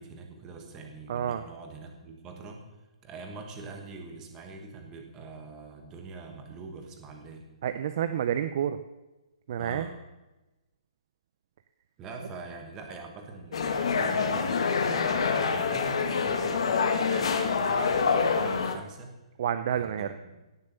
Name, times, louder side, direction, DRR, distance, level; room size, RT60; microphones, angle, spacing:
voice 1, 0.0-2.6 3.0-7.5 9.6-10.0 12.0-19.1 19.7-20.1, right 3 dB, 15° right, 3 dB, 1.3 m, -43 dB
voice 2, 1.1-1.4 7.6-8.8 9.5-9.9 19.4-20.1, right 9 dB, 30° right, 10 dB, 0.4 m, -29 dB
sound 1, 13.5-18.7, left 5 dB, 55° left, 1.3 m, -26 dB
17.0 x 6.8 x 6.7 m, 1.1 s
hypercardioid pair, 175°, 4 cm